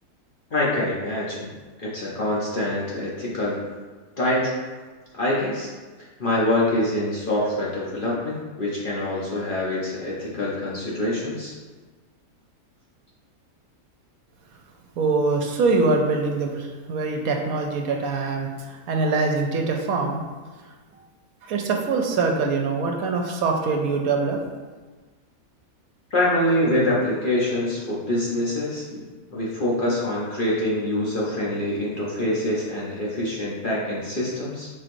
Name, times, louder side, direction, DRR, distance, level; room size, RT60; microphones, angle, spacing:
voice 1, 0.5-1.5 1.8-3.6 4.2-4.5 5.1-5.7 6.2-11.5 26.1-34.7, left 1 dB, 45° left, -6 dB, 0.8 m, -25 dB
voice 2, 15.0-18.5 18.9-20.2 21.4-24.4, right 3 dB, 75° right, 2 dB, 1.1 m, -23 dB
4.5 x 4.4 x 2.6 m, 1.3 s
omnidirectional pair, 1.5 m